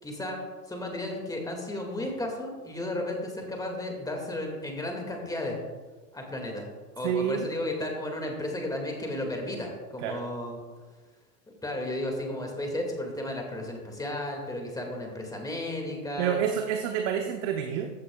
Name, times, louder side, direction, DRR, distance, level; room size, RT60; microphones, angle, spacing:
voice 1, 0.0-0.4 0.7-5.6 6.1-6.7 7.0-10.6 11.5-16.4, left 1 dB, 5° left, 1 dB, 2.0 m, -33 dB
voice 2, 7.0-7.5 10.0-10.2 16.2-17.9, right 8 dB, 45° right, 5 dB, 0.9 m, -28 dB
14.5 x 8.4 x 2.3 m, 1.3 s
hypercardioid pair, 115°, 49 cm